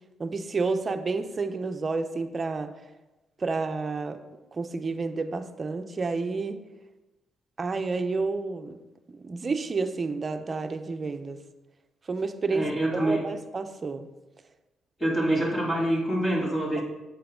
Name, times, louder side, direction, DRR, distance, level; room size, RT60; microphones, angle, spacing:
voice 1, 0.2-2.7 3.4-4.2 4.5-6.6 7.6-8.8 9.1-11.4 12.1-14.1, right 4 dB, 35° right, 8 dB, 0.7 m, -30 dB
voice 2, 12.5-13.3 15.0-16.8, right 1 dB, 15° left, -3 dB, 2.4 m, -26 dB
8.5 x 7.7 x 3.8 m, 1.1 s
cardioid pair, 90°, 0 cm